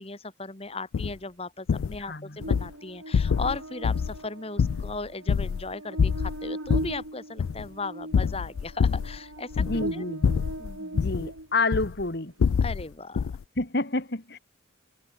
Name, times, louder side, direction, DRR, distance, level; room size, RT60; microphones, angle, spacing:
voice 1, 0.0-9.5 9.9-10.0 10.6-11.0 12.6-13.3, left 3 dB, 30° left, 1.8 m, -37 dB
sound 1, 0.9-1.1 1.7-2.0 2.4-2.7 3.1-3.6 3.8-4.2 4.6-5.7 6.0-7.0 7.4-7.7 8.1-9.2 9.5-9.9 10.2-11.3 11.7-12.0 12.4-12.8 13.2-13.4, left 6 dB, 85° left, 0.4 m, -25 dB
voice 2, 2.0-2.4 9.6-10.5 10.9-12.3 13.6-14.4, left 3 dB, 50° left, 2.1 m, -29 dB
Buzz, 2.4-11.9, right 1 dB, 85° right, 4.5 m, -39 dB
head